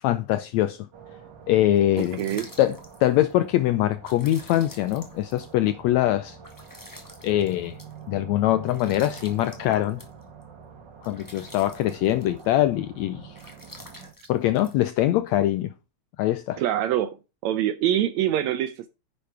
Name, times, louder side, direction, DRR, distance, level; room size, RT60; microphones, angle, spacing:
voice 1, 0.0-0.8 1.5-2.2 2.6-6.4 7.2-7.8 8.1-10.0 11.1-13.3 14.3-15.7 16.2-16.6, left 13 dB, 80° left, 1.6 m, -23 dB
sound 1, 0.9-14.1, right 6 dB, 40° right, 2.0 m, -46 dB
sound 2, 1.7-15.5, left 1 dB, 20° left, 0.6 m, -49 dB
voice 2, 2.0-2.5 16.6-17.2 17.4-18.9, right 11 dB, 80° right, 1.7 m, -25 dB
10.5 x 6.6 x 4.7 m
omnidirectional pair, 3.7 m